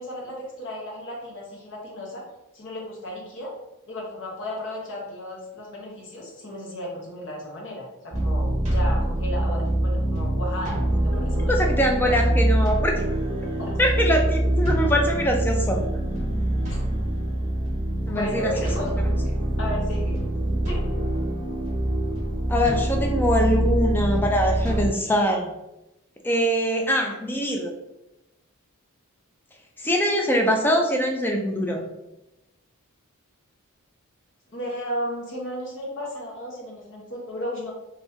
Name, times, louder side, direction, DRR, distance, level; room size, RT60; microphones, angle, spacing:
voice 1, 0.0-2.2 2.5-3.5 3.9-11.5 12.1-12.2 13.6-13.7 16.7-16.8 18.1-18.9 19.2-20.2 20.7-20.8 34.5-37.7, left 1 dB, 55° left, -3 dB, 1.0 m, -34 dB
sound 1, 8.1-24.9, right 1 dB, 30° right, 1.2 m, -24 dB
voice 2, 11.5-13.0 13.8-15.8 18.1-18.5 22.5-25.5 26.2-27.7 29.8-31.8, equal, 10° left, 2 dB, 0.4 m, -23 dB
3.4 x 2.6 x 2.7 m, 0.93 s
head